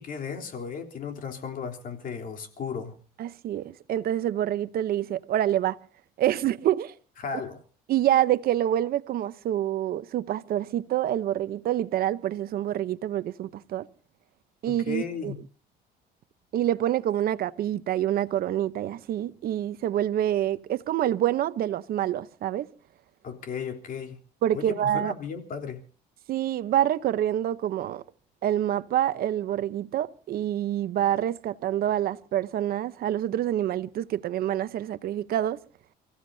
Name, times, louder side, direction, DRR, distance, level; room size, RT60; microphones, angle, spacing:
voice 1, 0.0-3.0 7.2-7.6 14.7-15.4 23.2-24.2 24.5-25.8, left 6 dB, 55° left, 3.4 m, -35 dB
voice 2, 3.2-5.8 6.2-6.9 7.9-13.9 14.6-15.3 16.5-22.7 24.4-25.1 26.3-28.0 28.4-35.6, right 12 dB, 60° right, 0.8 m, -27 dB
30.0 x 15.5 x 2.7 m
cardioid pair, 110°, 17 cm